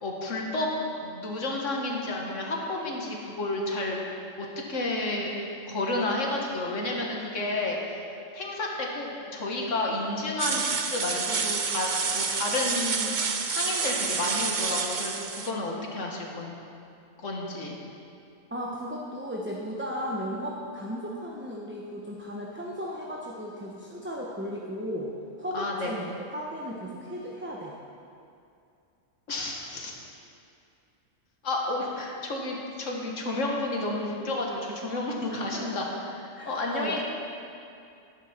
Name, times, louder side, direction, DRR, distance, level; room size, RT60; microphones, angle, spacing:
voice 1, 0.0-4.0 4.4-5.3 5.7-8.0 8.3-13.1 13.4-16.6 17.2-17.8 25.5-25.9 29.3-29.9 31.4-36.1 36.5-37.0, left 2 dB, 70° left, -1 dB, 2.1 m, -31 dB
sound 1, 10.4-15.5, right 5 dB, 45° right, 0.8 m, -29 dB
voice 2, 18.5-25.1 25.4-27.7 35.3-35.7 36.3-37.0, equal, 10° right, -3 dB, 1.0 m, -35 dB
17.0 x 11.0 x 4.5 m, 2.5 s
omnidirectional pair, 1.3 m